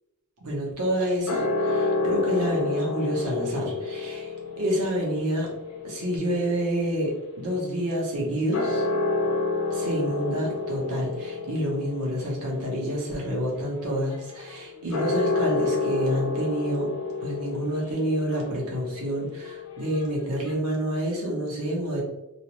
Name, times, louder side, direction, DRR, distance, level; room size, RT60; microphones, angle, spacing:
voice 1, 0.4-5.5 5.8-8.8 9.7-16.9 17.2-22.0, equal, 85° right, -2 dB, 0.8 m, -28 dB
sound 1, 1.3-7.9 8.4-20.5, left 3 dB, 85° left, 0.7 m, -30 dB
2.4 x 2.0 x 2.8 m, 0.98 s
head